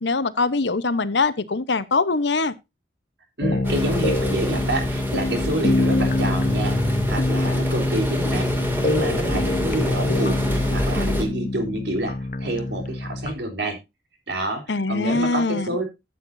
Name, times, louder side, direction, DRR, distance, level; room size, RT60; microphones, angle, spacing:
voice 1, 0.0-2.5 14.7-15.7, left 3 dB, 80° left, 0.9 m, -22 dB
sound 1, 3.4-13.3, left 2 dB, 45° left, 0.9 m, -25 dB
voice 2, 3.4-6.8 7.1-8.5 8.8-13.8 14.3-15.8, right 1 dB, 75° right, 3.7 m, -28 dB
sound 2, 3.6-11.2, equal, 10° right, 2.4 m, -27 dB
14.0 x 8.7 x 2.6 m
head